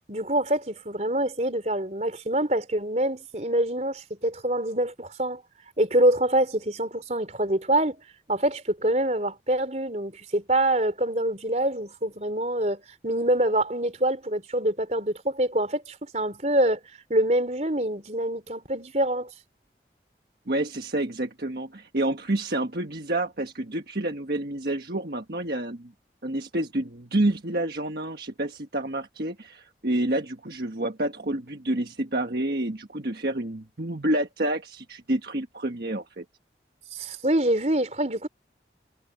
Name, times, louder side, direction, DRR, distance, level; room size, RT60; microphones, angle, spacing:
voice 1, 0.1-5.4 5.8-8.0 8.3-16.8 17.1-19.3 36.9-38.3, right 1 dB, 40° right, 3.9 m, -25 dB
voice 2, 20.5-25.9 26.2-36.2, right 1 dB, 60° right, 1.5 m, -28 dB
head